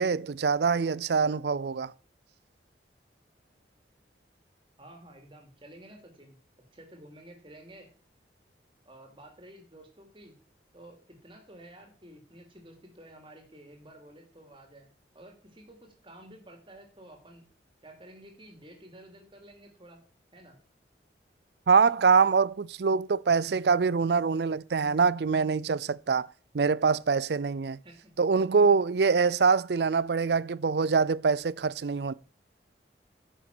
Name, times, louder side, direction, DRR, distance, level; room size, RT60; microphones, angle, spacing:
voice 1, 0.0-1.9 21.7-26.3 26.5-27.8 28.2-32.1, right 5 dB, 65° right, 0.5 m, -24 dB
voice 2, 4.8-6.4 6.7-7.9 8.8-10.3 10.7-14.9 15.1-17.5 17.8-20.0 20.3-20.6 27.8-28.1, right 1 dB, 30° right, 3.0 m, -51 dB
10.5 x 6.8 x 6.1 m
head